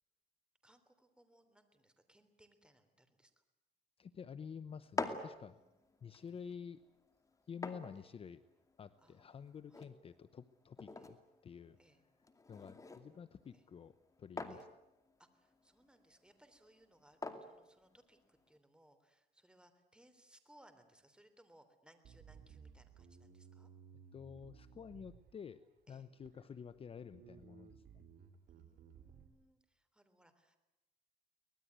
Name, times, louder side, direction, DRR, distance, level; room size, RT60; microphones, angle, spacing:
voice 1, 0.6-3.3 5.5-6.5 9.0-9.3 9.7-9.9 11.0-11.1 11.8-12.0 13.5-13.6 14.5-14.6 15.2-23.7 25.9-26.1 28.5-30.6, right 1 dB, 5° right, 9 dB, 3.4 m, -67 dB
voice 2, 4.0-5.6 6.0-6.8 7.5-8.4 8.8-11.2 11.4-11.8 12.5-14.7 24.1-25.6 25.9-27.8, left 7 dB, 35° left, 14 dB, 0.8 m, -50 dB
sound 1, 4.7-18.6, left 3 dB, 20° left, 2.5 m, -49 dB
Bass guitar, 22.0-25.6 26.2-26.8 27.1-29.2, right 6 dB, 60° right, 3.1 m, -58 dB
24.5 x 19.5 x 9.5 m, 0.96 s
cardioid pair, 110°, 17 cm